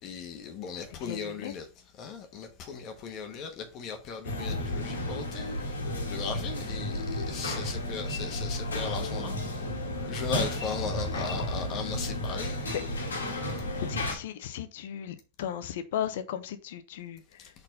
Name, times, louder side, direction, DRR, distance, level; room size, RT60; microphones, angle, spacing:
voice 1, 0.0-5.8 6.1-9.7 10.0-12.6 17.4-17.5, left 5 dB, 45° left, 1.2 m, -37 dB
voice 2, 1.0-1.5 11.4-11.5 12.7-12.8 13.8-17.2, left 10 dB, 70° left, 0.8 m, -36 dB
sound 1, 4.2-14.1, left 1 dB, 90° left, 1.6 m, -33 dB
4.4 x 4.0 x 5.4 m
hypercardioid pair, 100°, 0 cm